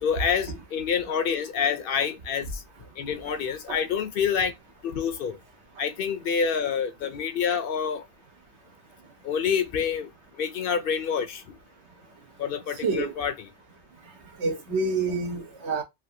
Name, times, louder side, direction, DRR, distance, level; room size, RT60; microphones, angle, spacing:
voice 1, 0.0-2.6 3.0-4.5 4.8-5.4 5.8-8.0 9.2-10.1 10.4-11.4 12.4-13.5, left 7 dB, 65° left, 0.7 m, -27 dB
voice 2, 12.8-13.1 14.4-15.8, right 3 dB, 85° right, 1.3 m, -27 dB
3.1 x 2.6 x 2.7 m
omnidirectional pair, 1.1 m